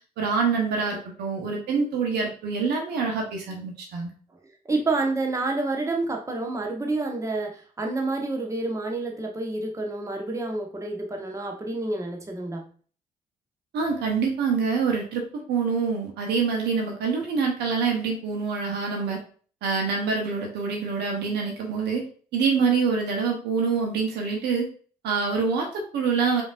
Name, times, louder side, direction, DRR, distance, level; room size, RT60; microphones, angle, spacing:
voice 1, 0.2-4.1 13.7-19.2 19.6-22.0 22.3-24.7 25.0-26.4, right 5 dB, 55° right, 1 dB, 1.0 m, -25 dB
voice 2, 4.7-12.6, right 2 dB, 15° right, 1 dB, 0.9 m, -28 dB
5.0 x 2.8 x 2.5 m, 0.42 s
figure-of-eight pair, 45°, 20 cm